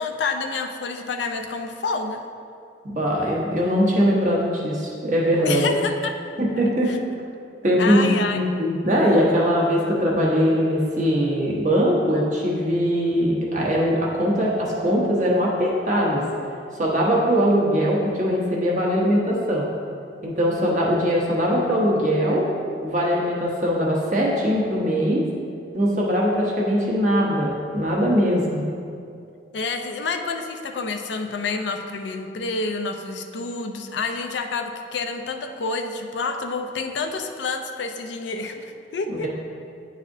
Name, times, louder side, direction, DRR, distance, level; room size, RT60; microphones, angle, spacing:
voice 1, 0.0-2.2 5.4-6.1 6.8-7.0 7.8-8.4 29.5-39.3, left 4 dB, 75° left, 5 dB, 0.5 m, -28 dB
voice 2, 2.8-5.7 6.4-6.9 7.6-16.2 16.8-19.7 20.2-22.4 22.8-25.2 25.7-28.6 39.1-39.3, equal, 45° right, -4 dB, 1.1 m, -21 dB
9.8 x 4.1 x 2.7 m, 2.5 s
head